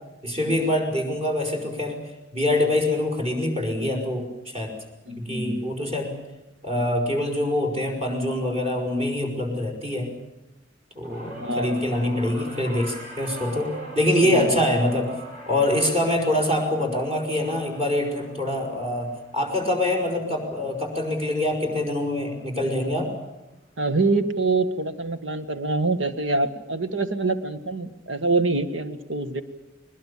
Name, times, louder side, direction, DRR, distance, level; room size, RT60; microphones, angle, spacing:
voice 1, 0.2-2.0 2.3-4.7 5.2-6.1 6.6-10.1 11.0-15.2 15.5-23.1, left 1 dB, 35° right, 3 dB, 5.9 m, -25 dB
voice 2, 5.1-5.6 11.3-11.8 14.2-14.7 23.8-29.4, right 3 dB, 85° right, 10 dB, 1.8 m, -25 dB
sound 1, 11.0-21.5 21.8-22.2 23.3-23.4, right 1 dB, 50° right, 7.9 m, -42 dB
21.5 x 21.0 x 8.6 m, 1.0 s
head